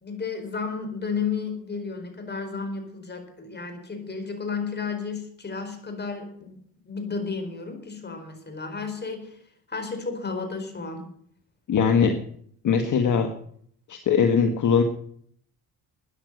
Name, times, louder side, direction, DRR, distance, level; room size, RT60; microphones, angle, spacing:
voice 1, 0.0-6.6 6.8-9.3 9.7-11.0, left 5 dB, 25° left, 6 dB, 4.5 m, -32 dB
voice 2, 11.7-12.2 12.6-13.3 13.9-14.8, left 6 dB, 50° left, 6 dB, 1.7 m, -20 dB
13.0 x 9.9 x 8.0 m, 0.63 s
cardioid pair, 100°, 38 cm